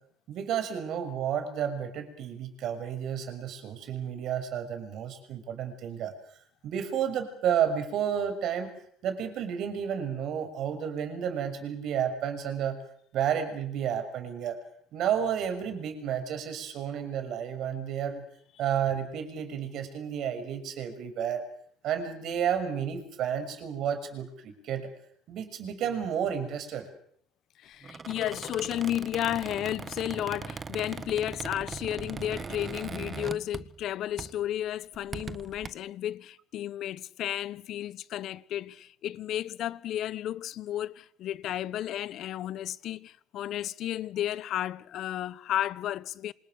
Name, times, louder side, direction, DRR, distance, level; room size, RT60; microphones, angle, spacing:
voice 1, 0.3-6.1 6.6-8.7 9.0-12.8 13.1-14.6 14.9-18.3 18.6-21.4 21.8-24.9 25.3-26.9, right 8 dB, 55° right, 6.4 m, -31 dB
voice 2, 27.6-46.3, left 12 dB, 55° left, 1.2 m, -33 dB
Squeak, 27.8-33.9 34.2-34.4 34.9-35.7, right 5 dB, 25° right, 1.3 m, -40 dB
28.0 x 26.5 x 6.6 m
cardioid pair, 135°, 0 cm